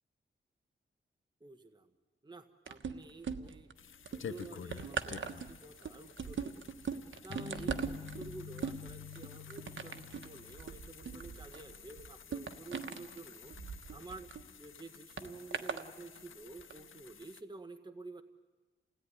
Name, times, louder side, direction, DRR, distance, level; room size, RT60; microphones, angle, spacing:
voice 1, 1.4-1.9 2.2-3.7 4.1-6.7 7.2-14.3 14.6-18.2, right 3 dB, 20° right, 7 dB, 1.3 m, -50 dB
sound 1, 2.7-3.7 4.1-14.4 15.2-15.9 16.6-16.7, right 6 dB, 75° right, 1.3 m, -41 dB
sound 2, 3.8-17.4, left 7 dB, 80° left, 0.8 m, -52 dB
sound 3, 7.3-11.5, left 7 dB, 65° left, 1.5 m, -49 dB
29.0 x 17.5 x 10.0 m, 1.3 s
wide cardioid pair, 85°, 20 cm